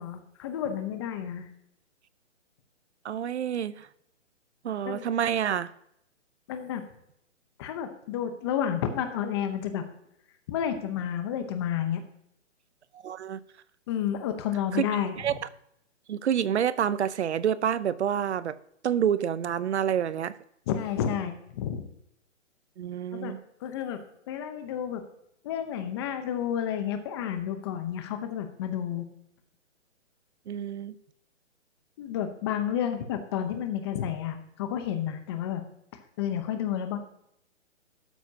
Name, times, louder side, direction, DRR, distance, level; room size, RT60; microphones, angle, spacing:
voice 1, 0.0-1.5 4.8-5.0 6.5-6.8 7.6-9.8 10.5-12.0 13.9-15.1 20.7-21.9 23.1-23.3 23.6-25.0 25.4-29.1 32.0-35.6 36.2-37.0, left 9 dB, 20° left, 8 dB, 0.9 m, -31 dB
voice 2, 3.0-3.9 4.6-5.7 13.0-13.4 14.7-14.8 15.2-15.4 16.1-18.6 18.8-20.4 22.8-23.4 30.5-30.9, right 9 dB, 60° right, 17 dB, 0.7 m, -28 dB
12.5 x 9.1 x 2.8 m, 0.75 s
hypercardioid pair, 155°, 37 cm